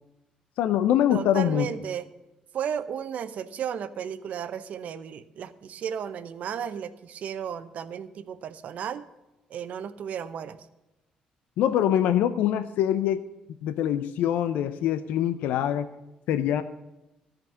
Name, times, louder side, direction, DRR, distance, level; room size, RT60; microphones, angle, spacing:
voice 1, 0.6-1.7 11.6-13.2 13.6-15.9 16.3-16.6, left 10 dB, 85° left, 11 dB, 0.5 m, -24 dB
voice 2, 1.1-2.0 2.5-9.0 9.5-10.6, right 8 dB, 65° right, 12 dB, 0.8 m, -34 dB
13.5 x 5.2 x 9.3 m, 0.98 s
cardioid pair, 75°, 3 cm